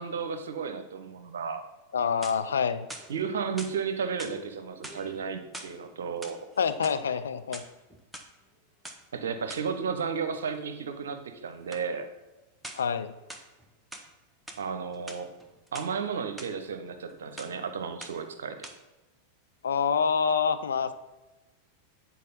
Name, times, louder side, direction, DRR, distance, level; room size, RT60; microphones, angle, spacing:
voice 1, 0.0-1.6 3.1-6.4 9.1-12.1 14.6-15.3 15.7-18.6, right 6 dB, 65° right, 8 dB, 0.7 m, -33 dB
voice 2, 1.9-2.9 6.6-7.6 12.8-13.1 19.6-20.9, left 6 dB, 70° left, 10 dB, 0.4 m, -26 dB
sound 1, 2.0-2.6 2.9-3.8 4.2-4.4 4.8-5.8 6.1-7.0 7.4-8.3 8.8-9.0 9.5-9.7 11.7-11.9 12.6-12.9 13.3-14.1 14.5-14.6 14.9-15.9 16.4-16.5 16.9-17.1 17.4-17.6 18.0-18.3 18.6-18.7, right 1 dB, 5° right, 0.8 m, -44 dB
8.4 x 4.2 x 4.0 m, 1.1 s
figure-of-eight pair, 90°, 0 cm